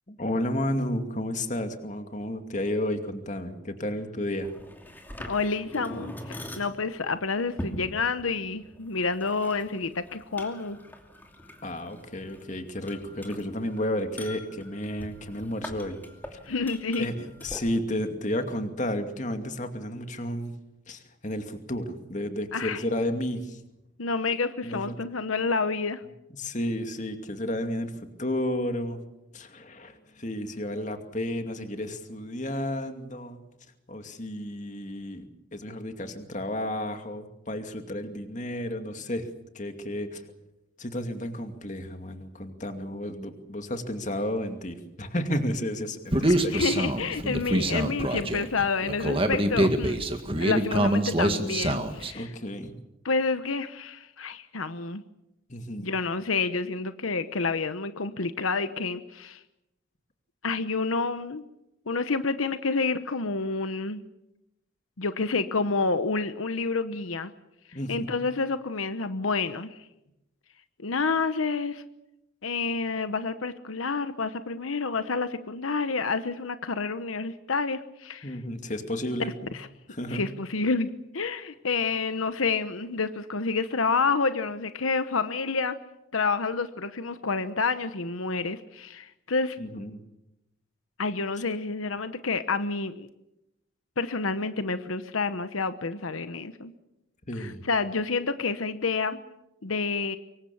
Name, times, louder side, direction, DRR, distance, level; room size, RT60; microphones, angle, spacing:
voice 1, 0.1-4.5 11.6-16.0 16.3-16.4 17.0-17.1 17.4-20.5 20.9-23.6 24.6-24.9 26.3-29.0 29.3-33.4 33.9-39.3 39.5-40.2 40.8-46.6 48.8-48.9 49.6-49.7 52.1-52.7 55.5-55.9 67.7-68.3 78.2-79.3 79.9-80.3 89.6-90.0 97.3-97.6, left 1 dB, 35° left, 6 dB, 2.5 m, -32 dB
sound 1, 4.4-17.6, equal, 10° left, 2.6 m, -43 dB
voice 2, 5.2-10.8 16.5-17.1 22.5-22.8 24.0-26.0 46.2-50.0 50.3-52.3 53.0-55.0 55.8-59.4 60.4-61.4 61.9-64.0 65.0-67.3 67.7-69.8 70.8-71.8 72.4-78.4 79.5-79.7 80.1-85.8 86.1-89.6 91.0-93.1 94.0-96.7 97.4-99.2 99.6-100.2, left 4 dB, 85° left, 11 dB, 1.1 m, -29 dB
Human voice, 46.1-52.1, right 1 dB, 25° right, 1.9 m, -25 dB
25.0 x 23.5 x 7.2 m, 0.88 s
head